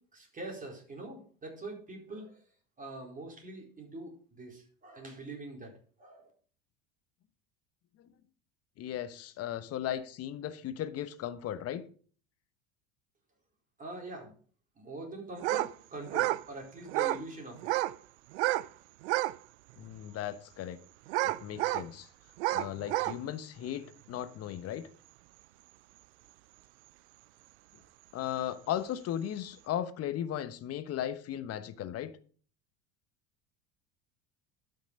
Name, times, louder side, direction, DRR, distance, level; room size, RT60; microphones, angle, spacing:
voice 1, 0.0-2.4 2.8-5.7 6.0-6.3 13.8-14.3 14.8-17.7, right 2 dB, 25° right, 4.4 m, -43 dB
voice 2, 8.8-11.8 19.8-20.8 21.2-22.1 22.5-24.9 28.1-32.1, left 11 dB, 45° left, 1.1 m, -36 dB
sound 1, 15.4-15.7 16.0-16.4 16.9-17.2 17.6-18.0 18.3-18.7 19.0-19.4 19.9-20.0 21.1-21.9 22.4-23.2, right 17 dB, 80° right, 0.5 m, -30 dB
11.5 x 6.0 x 5.3 m
supercardioid pair, 95°, 33 cm